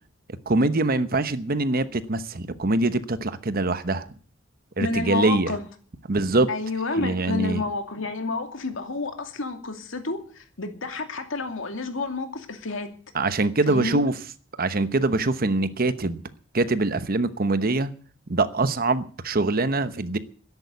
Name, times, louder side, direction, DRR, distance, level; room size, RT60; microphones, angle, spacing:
voice 1, 0.5-4.1 4.8-5.5 6.1-6.5 7.0-7.6 13.1-14.1 14.6-16.2 16.5-17.9 18.3-20.2, right 2 dB, 45° right, 1.0 m, -23 dB
voice 2, 4.8-5.6 6.5-12.9 13.7-14.0, left 3 dB, 75° left, 2.6 m, -29 dB
13.0 x 11.0 x 8.2 m
head